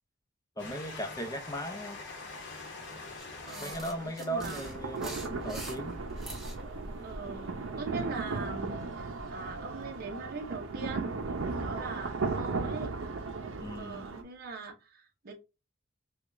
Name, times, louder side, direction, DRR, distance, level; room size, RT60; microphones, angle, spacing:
Train, 0.6-11.8 12.5-12.6 12.8-12.9, left 3 dB, 65° left, 1.0 m, -48 dB
voice 1, 0.6-2.0 3.6-6.0 13.6-14.1, right 1 dB, 20° left, 0.6 m, -37 dB
sound 1, 3.2-6.6, right 1 dB, ahead, 1.0 m, -45 dB
voice 2, 3.4-4.7 7.0-12.9 13.8-15.3, right 3 dB, 50° right, 0.8 m, -42 dB
sound 2, 4.4-14.2, right 3 dB, 80° right, 0.6 m, -36 dB
4.7 x 2.3 x 2.6 m
head